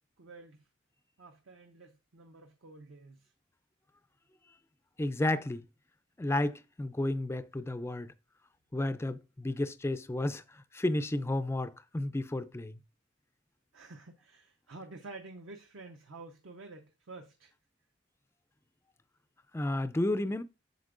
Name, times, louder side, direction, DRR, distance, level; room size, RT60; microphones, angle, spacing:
voice 1, 0.2-0.7 1.2-3.3 13.7-17.5, right 3 dB, 65° right, 0.6 m, -50 dB
voice 2, 5.0-5.6 6.2-8.1 8.7-10.4 10.7-12.8 19.5-20.4, left 1 dB, 10° left, 0.3 m, -32 dB
8.1 x 6.7 x 2.5 m
head